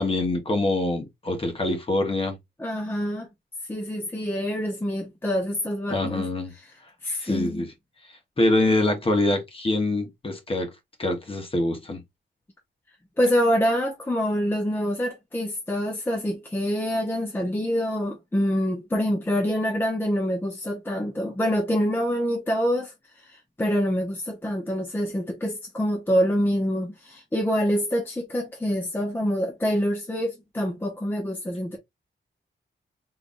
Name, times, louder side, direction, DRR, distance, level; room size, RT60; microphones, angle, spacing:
voice 1, 0.0-2.4 5.9-6.5 7.2-7.7 8.4-10.7 11.0-12.0, left 2 dB, 30° left, 1.0 m, -24 dB
voice 2, 2.6-3.3 3.7-6.3 6.5-6.7 7.0-7.6 13.2-31.8, equal, 10° left, 0.7 m, -26 dB
3.9 x 3.2 x 2.5 m
wide cardioid pair, 175°, 20 cm